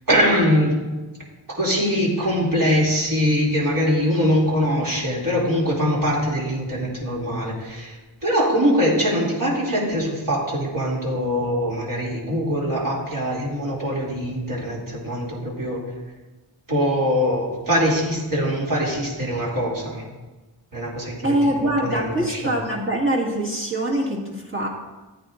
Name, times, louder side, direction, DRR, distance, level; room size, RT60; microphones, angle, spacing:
voice 1, 0.1-0.8 1.5-15.8 16.7-20.0 20.7-22.5, equal, 50° right, -5 dB, 2.8 m, -22 dB
voice 2, 21.2-24.7, right 1 dB, 30° right, -3 dB, 1.8 m, -23 dB
14.0 x 9.3 x 2.6 m, 1.2 s
wide cardioid pair, 90°, 43 cm